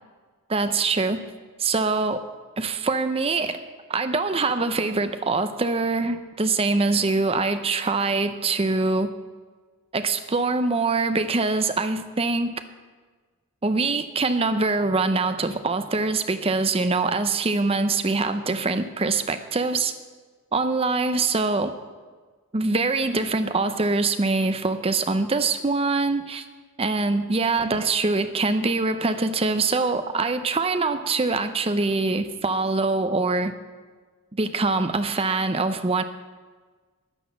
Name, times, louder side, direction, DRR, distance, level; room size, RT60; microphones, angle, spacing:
voice 1, 0.5-1.2 1.6-2.2 2.6-3.6 3.9-9.1 9.9-12.5 13.6-19.9 20.5-21.7 22.5-26.4 26.8-33.5 34.3-36.0, right 3 dB, 25° right, 10 dB, 0.6 m, -24 dB
11.0 x 9.9 x 7.1 m, 1.4 s
head